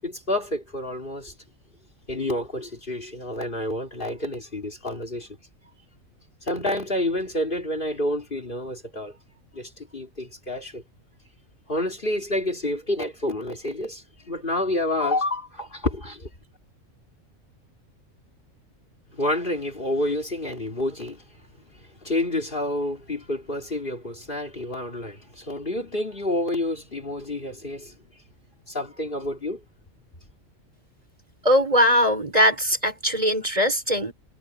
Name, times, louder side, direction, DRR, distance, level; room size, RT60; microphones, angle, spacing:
voice 1, 0.0-1.3 2.1-5.3 6.4-9.2 9.5-10.8 11.7-16.3 19.1-21.2 21.8-28.0 28.7-29.6, left 1 dB, 40° left, 3.5 m, -29 dB
voice 2, 31.4-34.1, equal, 25° right, 5.0 m, -20 dB
omnidirectional pair, 1.4 m